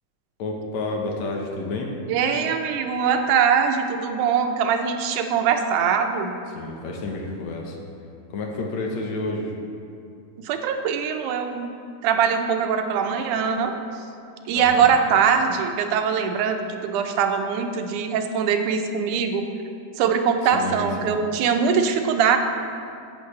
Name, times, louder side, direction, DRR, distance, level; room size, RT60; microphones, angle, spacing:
voice 1, 0.4-1.9 6.5-7.8 8.3-9.5 14.5-14.9 20.5-21.1, left 2 dB, 70° left, 0 dB, 2.2 m, -30 dB
voice 2, 2.1-6.3 10.4-11.7 12.0-13.7 14.5-19.5 20.0-22.4, right 7 dB, 90° right, 5 dB, 2.2 m, -22 dB
13.5 x 8.3 x 3.3 m, 2.6 s
omnidirectional pair, 3.5 m